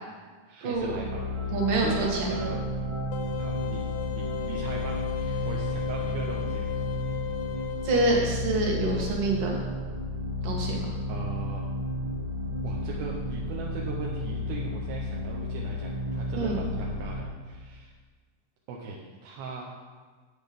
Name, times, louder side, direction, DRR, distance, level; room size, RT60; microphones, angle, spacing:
voice 1, 0.5-2.6 3.4-6.8 11.1-11.7 12.6-17.9 18.7-19.7, right 4 dB, 80° right, -2 dB, 2.8 m, -39 dB
sound 1, 0.7-17.2, left 1 dB, 25° right, 0.6 m, -32 dB
voice 2, 1.5-2.3 7.8-9.6 10.4-10.9 16.4-16.6, right 2 dB, 65° right, -2 dB, 3.3 m, -26 dB
sound 2, 3.1-8.2, left 13 dB, 90° left, 2.6 m, -36 dB
9.9 x 8.5 x 5.2 m, 1.4 s
omnidirectional pair, 4.3 m